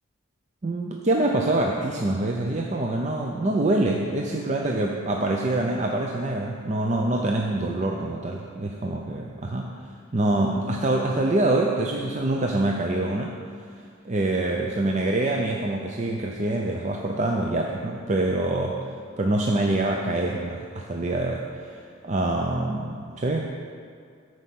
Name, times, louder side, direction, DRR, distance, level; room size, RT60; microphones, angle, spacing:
voice 1, 0.6-9.7 10.1-13.3 14.0-18.8 19.2-21.4 22.0-23.5, right 2 dB, 35° right, 0 dB, 0.5 m, -25 dB
13.5 x 4.8 x 5.8 m, 2.3 s
head